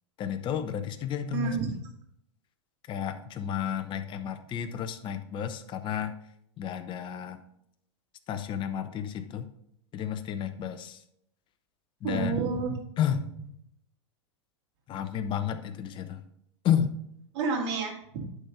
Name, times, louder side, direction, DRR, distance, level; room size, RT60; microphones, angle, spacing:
voice 1, 0.2-1.8 2.9-6.1 6.6-7.4 8.3-9.5 9.9-11.0 12.0-12.3 13.0-13.3 14.9-16.2 16.6-16.9, left 9 dB, 30° left, 9 dB, 0.8 m, -31 dB
voice 2, 1.3-1.7 12.0-12.8 17.3-18.2, right 4 dB, 65° right, 1 dB, 2.3 m, -29 dB
11.0 x 4.4 x 3.8 m, 0.73 s
hypercardioid pair, 115°, 16 cm